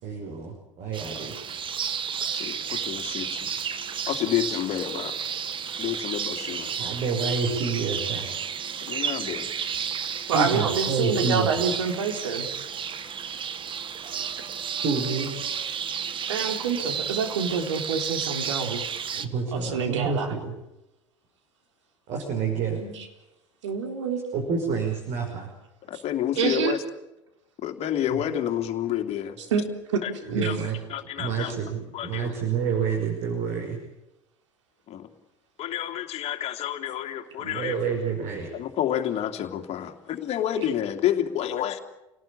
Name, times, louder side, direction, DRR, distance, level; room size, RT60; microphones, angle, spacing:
voice 1, 0.0-1.3 6.8-8.3 10.3-11.5 14.8-15.3 19.1-20.5 22.1-22.8 24.3-25.5 28.1-28.2 30.3-30.8 31.2-33.8 37.4-38.5, right 5 dB, 50° right, 2 dB, 5.8 m, -28 dB
sound 1, 0.9-19.3, right 7 dB, 35° right, 1.6 m, -32 dB
voice 2, 2.3-3.5 4.1-5.2 5.8-6.7 8.8-9.5 25.8-26.8 27.6-29.4 30.0-30.1 30.4-30.6 30.9-31.5 31.9-32.3 34.9-35.1 35.6-37.8 38.5-41.8, left 11 dB, 40° left, 5 dB, 2.8 m, -29 dB
voice 3, 10.3-12.5 16.3-18.8 19.5-20.3 22.5-23.1 23.6-24.2 26.4-26.8 29.5-29.6 30.3-30.5, right 5 dB, 75° right, 5 dB, 4.0 m, -27 dB
29.0 x 18.5 x 8.7 m, 0.93 s
figure-of-eight pair, 75°, 16 cm